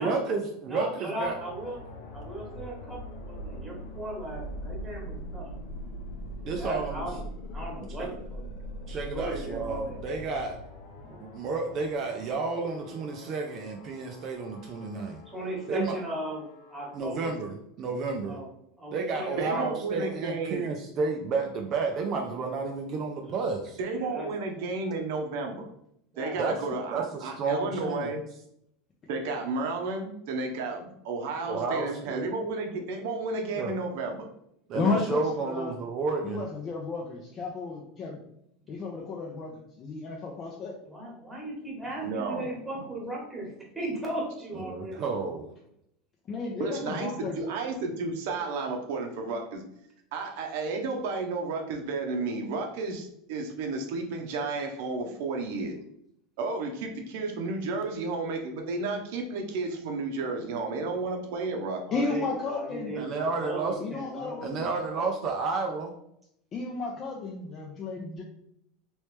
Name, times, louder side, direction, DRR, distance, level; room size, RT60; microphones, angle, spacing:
voice 1, 0.0-1.4 6.4-7.1 7.8-8.1 8.9-10.6 11.1-15.2 15.7-16.0 16.9-18.4 18.9-23.8 26.4-26.6 26.9-28.1 31.5-32.3 33.5-33.7 34.7-36.4 44.5-45.5 63.0-63.8 64.4-65.9, right 4 dB, 40° right, 3 dB, 0.4 m, -31 dB
voice 2, 0.7-1.8 2.1-5.5 6.4-7.2 7.5-8.4 9.1-10.0 15.3-16.4 16.7-17.3 18.3-18.5 18.8-19.7 19.9-20.1 23.9-24.3 26.1-26.4 40.9-45.1 61.9-64.4, right 1 dB, 10° right, -3 dB, 1.2 m, -37 dB
sound 1, 1.2-17.0, equal, 90° left, 0.8 m, -42 dB
voice 3, 19.4-20.6 23.8-25.7 26.2-28.2 29.1-34.3 42.0-42.4 46.6-49.6 50.1-55.8 56.4-61.8, right 3 dB, 70° right, 3 dB, 0.8 m, -32 dB
voice 4, 34.7-35.7 36.2-38.2 38.7-40.7 46.3-47.4 61.9-62.9 63.8-64.5 66.5-68.2, left 3 dB, 30° left, -1 dB, 0.5 m, -33 dB
3.1 x 3.1 x 3.2 m, 0.75 s
supercardioid pair, 145°, 0 cm